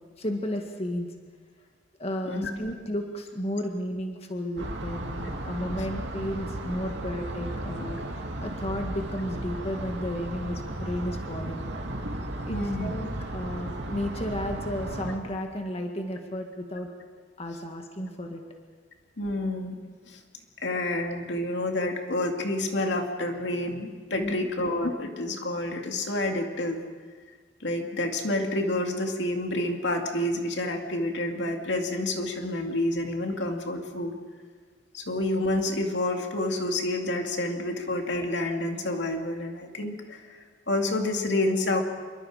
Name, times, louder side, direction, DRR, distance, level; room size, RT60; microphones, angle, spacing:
voice 1, 0.2-1.1 2.0-11.6 12.5-16.9 17.4-18.4 24.2-24.5, equal, 35° left, 3 dB, 1.8 m, -33 dB
sound 1, 4.6-15.2, right 1 dB, 75° right, 2.6 m, -35 dB
voice 2, 12.5-12.9 19.2-19.8 20.1-20.2 20.6-26.8 27.6-34.2 34.9-41.8, left 1 dB, 75° left, 3 dB, 2.3 m, -29 dB
26.5 x 23.0 x 5.0 m, 1.5 s
head